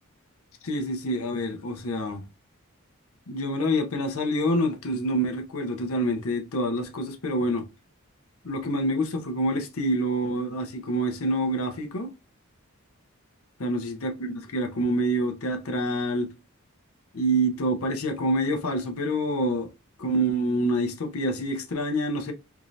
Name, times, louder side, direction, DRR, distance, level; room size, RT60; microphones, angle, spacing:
voice 1, 0.6-2.2 3.3-7.7 8.4-12.1 13.6-16.3 17.1-19.7 20.0-22.3, right 1 dB, 80° left, 0.8 m, -27 dB
3.6 x 2.7 x 3.0 m
head